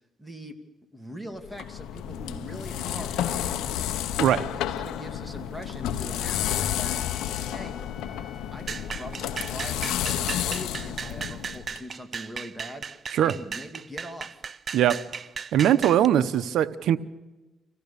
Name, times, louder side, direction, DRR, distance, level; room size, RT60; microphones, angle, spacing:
voice 1, 0.2-0.5 0.9-3.8 4.5-7.0 7.5-7.8 8.5-14.3, equal, 5° right, 6 dB, 2.4 m, -41 dB
sound 1, 1.4-11.8, left 10 dB, 90° left, 1.0 m, -31 dB
Trumpet, 6.2-11.4, left 5 dB, 40° left, 2.9 m, -49 dB
sound 2, 8.7-16.1, right 6 dB, 45° right, 0.6 m, -36 dB
voice 2, 15.5-17.0, right 10 dB, 75° right, 13 dB, 0.9 m, -21 dB
26.0 x 15.5 x 7.0 m, 1.1 s
cardioid pair, 90°, 0 cm